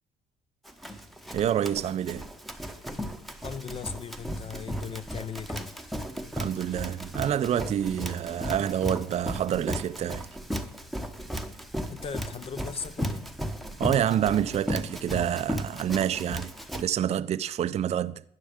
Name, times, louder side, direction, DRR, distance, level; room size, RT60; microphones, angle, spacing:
Run, 0.7-16.8, equal, ahead, 0.9 m, -35 dB
voice 1, 1.3-2.3 6.3-10.3 13.8-18.2, right 10 dB, 40° right, 0.4 m, -27 dB
voice 2, 3.4-5.7 11.6-13.3, left 6 dB, 35° left, 0.5 m, -38 dB
12.0 x 9.7 x 3.6 m
cardioid pair, 110°, 17 cm